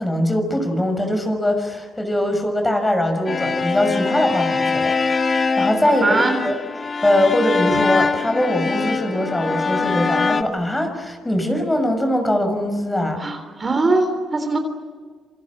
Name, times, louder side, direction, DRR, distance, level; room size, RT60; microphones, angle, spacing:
voice 1, 0.0-6.5 7.0-13.2, left 1 dB, 15° left, 6 dB, 6.1 m, -21 dB
sound 1, 3.3-10.4, left 4 dB, 35° left, 1.8 m, -22 dB
voice 2, 6.0-6.4 13.2-14.6, right 3 dB, 30° right, 7 dB, 3.6 m, -20 dB
27.5 x 26.0 x 7.4 m, 1.5 s
cardioid pair, 90°, 0 cm